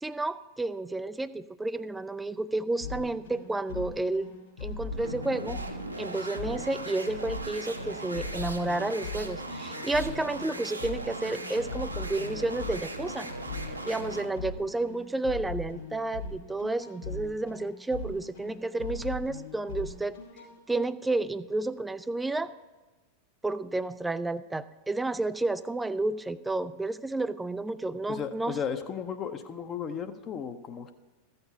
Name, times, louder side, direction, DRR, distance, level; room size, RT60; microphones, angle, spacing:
voice 1, 0.0-4.3 4.6-5.6 6.0-13.3 13.8-20.2 20.7-22.5 23.4-28.6, right 2 dB, 10° right, 15 dB, 0.4 m, -31 dB
sound 1, 2.8-20.5, left 3 dB, 70° left, 3.9 m, -40 dB
sound 2, 4.7-14.4, right 2 dB, 85° right, 0.9 m, -38 dB
voice 2, 28.1-30.9, left 7 dB, 30° left, 7 dB, 0.7 m, -35 dB
14.5 x 6.9 x 5.5 m, 1.2 s
figure-of-eight pair, 90°, 0 cm